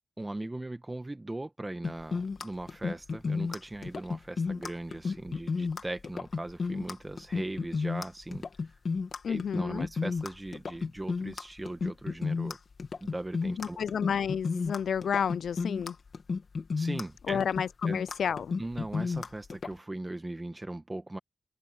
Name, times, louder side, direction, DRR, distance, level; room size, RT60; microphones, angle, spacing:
voice 1, 0.2-8.5 9.3-12.6 13.0-13.8 16.8-17.4 17.9-18.0 18.6-21.2, right 2 dB, 15° right, 1.3 m, -39 dB
sound 1, 1.8-19.7, left 4 dB, 55° left, 2.2 m, -33 dB
voice 2, 9.2-9.9 13.6-16.0 17.3-18.5, left 7 dB, 85° left, 0.3 m, -31 dB
wide cardioid pair, 115°, 0 cm